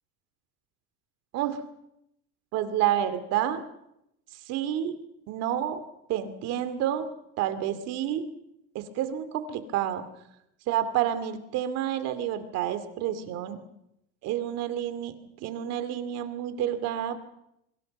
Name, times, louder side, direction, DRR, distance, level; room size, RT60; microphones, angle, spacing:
voice 1, 2.5-3.6 4.3-5.8 6.1-7.1 7.4-8.2 8.7-10.0 10.7-13.6 14.2-17.2, right 11 dB, 50° right, 10 dB, 2.5 m, -29 dB
26.0 x 25.0 x 5.4 m, 0.81 s
cardioid pair, 160°, 32 cm